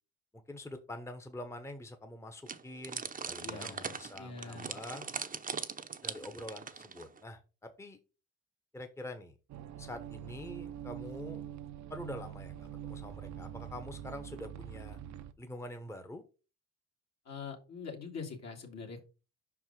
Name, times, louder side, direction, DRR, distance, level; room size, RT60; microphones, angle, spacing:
voice 1, 0.3-5.1 6.0-8.0 8.7-9.3 9.8-11.4 11.9-15.0 15.4-16.2, left 1 dB, 10° left, 7 dB, 0.9 m, -45 dB
sound 1, 2.5-7.2, right 5 dB, 30° right, 0.7 m, -41 dB
voice 2, 3.4-4.8 17.3-19.0, left 5 dB, 60° left, 2 dB, 2.3 m, -44 dB
sound 2, 9.5-15.3, right 10 dB, 70° right, 0.7 m, -44 dB
5.5 x 4.7 x 5.2 m, 0.32 s
cardioid pair, 90°, 30 cm